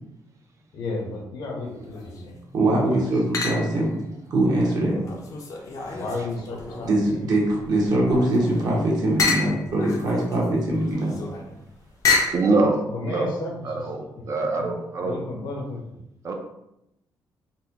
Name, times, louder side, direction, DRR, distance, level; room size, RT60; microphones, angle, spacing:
voice 1, 0.7-2.3 2.9-3.2 5.9-7.5 12.9-14.7 15.0-15.9, left 2 dB, 75° left, 0 dB, 0.8 m, -34 dB
sound 1, 1.8-2.4 3.3-3.9 4.4-7.1 7.6-12.5, left 4 dB, 45° left, 0.5 m, -29 dB
voice 2, 2.5-3.9 4.3-5.0 6.8-11.1, right 1 dB, 60° right, -3 dB, 1.0 m, -22 dB
voice 3, 12.3-13.3 13.6-15.2 16.2-16.3, right 3 dB, 40° right, 3 dB, 0.4 m, -24 dB
4.0 x 2.1 x 2.8 m, 0.84 s
wide cardioid pair, 175°, 8 cm